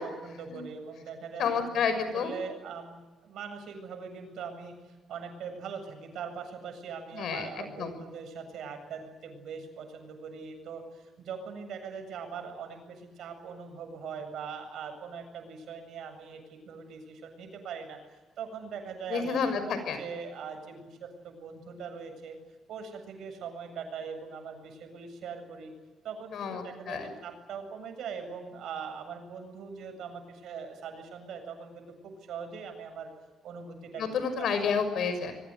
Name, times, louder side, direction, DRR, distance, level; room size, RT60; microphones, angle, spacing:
voice 1, 0.0-2.9 3.2-22.4 22.7-25.7 26.0-33.1 33.4-34.0 34.4-34.5, right 6 dB, 75° right, 6 dB, 7.8 m, -41 dB
voice 2, 1.4-2.3 7.1-7.9 19.1-20.0 26.3-27.1 34.0-35.4, left 6 dB, 70° left, 10 dB, 6.2 m, -30 dB
26.5 x 23.0 x 9.3 m, 1.2 s
cardioid pair, 90°, 0 cm